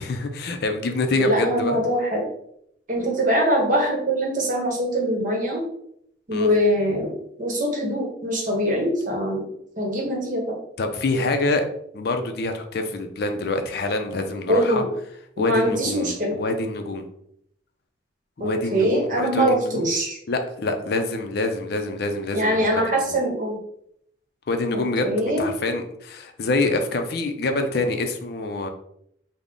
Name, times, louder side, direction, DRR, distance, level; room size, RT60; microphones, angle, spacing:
voice 1, 0.0-1.8 6.3-6.5 10.8-11.7 11.9-14.8 15.4-17.1 18.4-19.9 20.3-22.8 23.1-23.2 24.5-25.1 25.4-28.7, left 2 dB, 55° left, 6 dB, 0.4 m, -26 dB
voice 2, 1.2-2.3 2.9-5.6 6.3-9.5 9.8-10.6 14.5-14.9 15.4-16.3 18.4-20.2 22.3-23.6 24.7-25.4, equal, 45° right, 0 dB, 0.9 m, -23 dB
3.5 x 2.0 x 3.6 m, 0.73 s
head